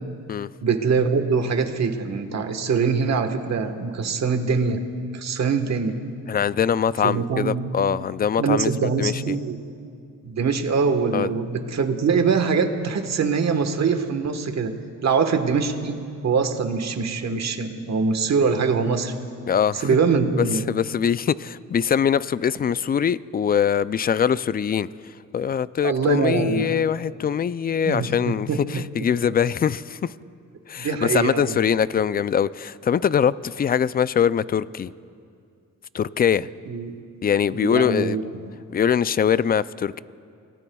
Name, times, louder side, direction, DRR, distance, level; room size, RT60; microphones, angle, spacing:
voice 1, 0.6-4.8 5.1-5.9 7.0-7.6 8.4-9.6 10.2-14.7 15.0-16.0 16.2-19.1 19.8-20.6 25.8-26.7 27.8-28.8 30.8-31.5 36.7-36.9 37.5-38.5, right 5 dB, 55° right, 6 dB, 1.4 m, -23 dB
voice 2, 6.3-9.4 11.1-11.3 19.5-19.9 20.4-24.9 25.3-30.1 30.7-34.9 35.9-36.5 37.2-38.2 38.7-40.0, left 8 dB, 30° left, 17 dB, 0.4 m, -23 dB
28.5 x 18.5 x 2.3 m, 2.4 s
cardioid pair, 80°, 32 cm